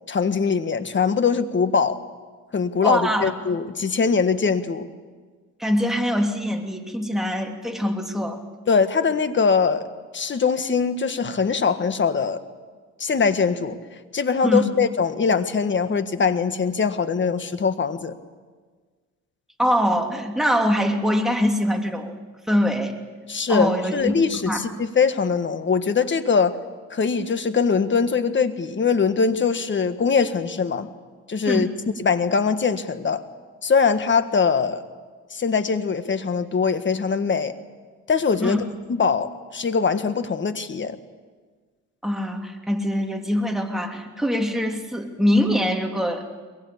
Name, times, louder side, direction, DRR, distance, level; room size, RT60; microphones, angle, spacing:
voice 1, 0.1-2.0 2.5-4.8 8.7-9.9 10.1-12.4 13.0-13.8 14.1-18.1 23.3-26.5 26.9-30.9 31.3-31.7 32.0-33.2 33.6-34.8 35.3-37.5 38.1-38.6 39.0-41.0, left 5 dB, 40° left, 10 dB, 1.6 m, -22 dB
voice 2, 2.8-3.3 5.6-8.4 14.4-14.6 19.6-22.2 22.5-23.0 23.5-24.1 24.5-24.6 31.5-31.7 38.4-38.6 42.0-46.2, equal, ahead, 2 dB, 3.0 m, -23 dB
22.5 x 21.5 x 8.6 m, 1.5 s
cardioid pair, 90°, 30 cm